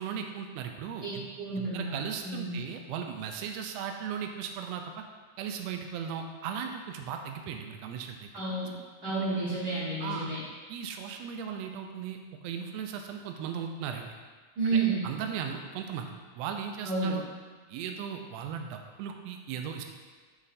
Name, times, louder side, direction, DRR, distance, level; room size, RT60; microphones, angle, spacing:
voice 1, 0.0-1.2 1.6-5.0 5.4-8.3 9.0-9.1 10.0-10.3 10.7-12.2 12.4-14.1 15.0-16.1 16.4-17.2 17.7-19.8, right 7 dB, 80° right, 4 dB, 1.5 m, -37 dB
voice 2, 1.0-2.6 8.3-8.7 9.0-10.4 14.6-15.1 16.8-17.2, right 3 dB, 60° right, -9 dB, 1.1 m, -31 dB
7.2 x 3.2 x 4.2 m, 1.5 s
omnidirectional pair, 3.4 m